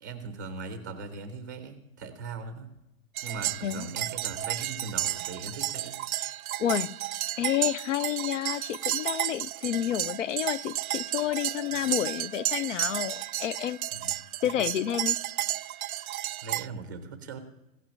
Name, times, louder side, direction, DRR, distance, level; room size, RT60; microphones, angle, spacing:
voice 1, 0.0-2.7 3.2-6.0 13.9-14.1 16.4-17.4, right 4 dB, 15° right, 0.6 m, -39 dB
sound 1, 3.2-16.7, right 13 dB, 75° right, 0.5 m, -32 dB
voice 2, 6.6-6.9 7.4-13.8 14.4-15.2, left 11 dB, 60° left, 0.5 m, -30 dB
16.0 x 6.0 x 8.6 m
hypercardioid pair, 175°, 43 cm